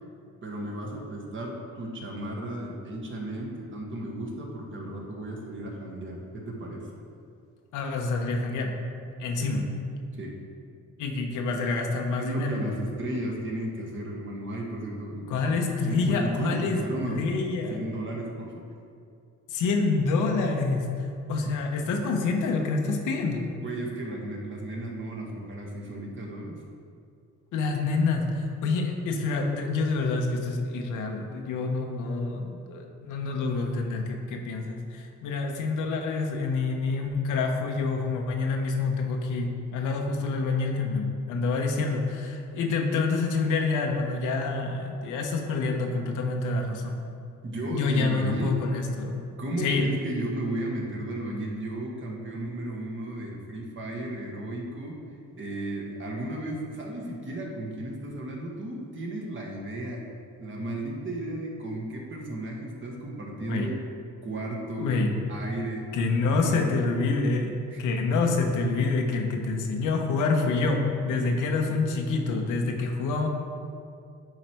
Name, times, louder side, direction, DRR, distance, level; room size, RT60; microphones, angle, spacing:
voice 1, 0.4-6.8 9.4-9.6 10.1-10.3 12.2-17.2 17.7-18.6 23.6-26.6 47.4-48.6 49.4-55.0 55.4-60.0 60.4-63.8 64.2-64.9 65.3-65.9 66.3-66.8 67.7-67.8, right 1 dB, 40° right, -1 dB, 1.4 m, -34 dB
voice 2, 7.7-8.8 9.2-9.7 11.0-12.8 15.3-17.8 19.5-23.5 27.5-47.0 47.7-49.3 49.6-49.9 63.5-63.7 64.8-65.2 65.9-73.3, left 3 dB, 90° left, 2 dB, 0.9 m, -27 dB
9.5 x 3.2 x 4.5 m, 2.4 s
cardioid pair, 90°, 30 cm